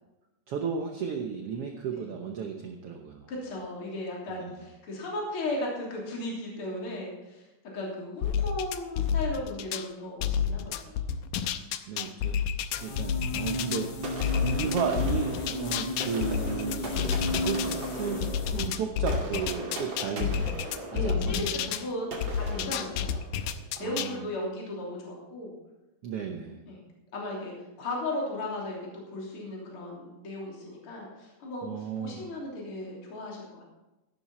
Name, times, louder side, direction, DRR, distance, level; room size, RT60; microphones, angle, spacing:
voice 1, 0.5-3.3 4.3-4.5 11.9-12.3 12.8-13.9 14.4-20.6 20.9-21.7 23.8-24.2 26.0-26.6 31.6-32.2, right 6 dB, 75° right, 3 dB, 1.4 m, -34 dB
voice 2, 3.3-7.5 7.7-11.1 20.2-20.5 20.9-22.1 22.3-23.2 23.8-25.5 26.7-26.8 27.1-33.6, left 1 dB, 40° left, -3 dB, 3.9 m, -36 dB
sound 1, 8.2-9.9 10.2-13.8 14.2-17.8 18.2-21.8 22.2-24.1, left 8 dB, 80° left, 2.2 m, -30 dB
sound 2, 12.8-18.7, left 1 dB, 65° left, 2.3 m, -34 dB
sound 3, 14.0-23.7, right 2 dB, 35° right, 2.8 m, -39 dB
14.5 x 11.5 x 4.3 m, 1.0 s
omnidirectional pair, 4.0 m